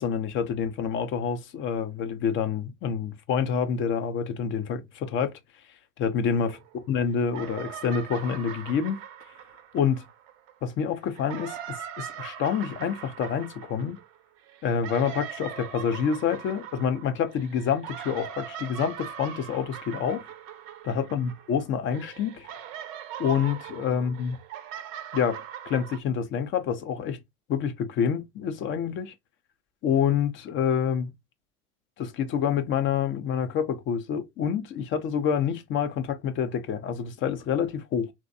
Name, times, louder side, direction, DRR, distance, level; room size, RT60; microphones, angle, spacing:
voice 1, 0.0-5.3 6.0-6.5 6.9-9.0 9.7-10.0 10.6-14.0 14.6-20.3 20.8-22.5 23.2-24.4 25.1-27.2 27.5-29.1 29.8-31.1 32.0-38.1, left 7 dB, 30° left, 0.4 m, -27 dB
sound 1, 6.3-7.0 7.2-10.5 11.1-21.6 21.9-26.0, right 9 dB, 60° right, 0.6 m, -41 dB
2.6 x 2.1 x 2.3 m
hypercardioid pair, 80°, 44 cm